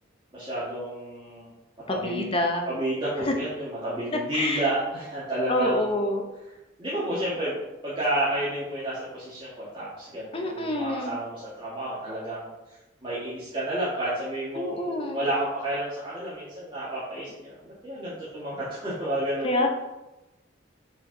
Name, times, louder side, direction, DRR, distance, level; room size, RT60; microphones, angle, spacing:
voice 1, 0.3-1.5 1.9-2.4 2.7-6.1 6.8-7.6 7.8-12.5 13.0-19.7, right 1 dB, 25° right, -11 dB, 1.7 m, -31 dB
voice 2, 1.9-2.7 3.2-3.3 4.3-4.7 5.5-6.3 10.3-11.2 14.5-15.2 19.4-19.7, left 1 dB, 25° left, 3 dB, 0.8 m, -27 dB
6.0 x 4.3 x 4.0 m, 1.0 s
head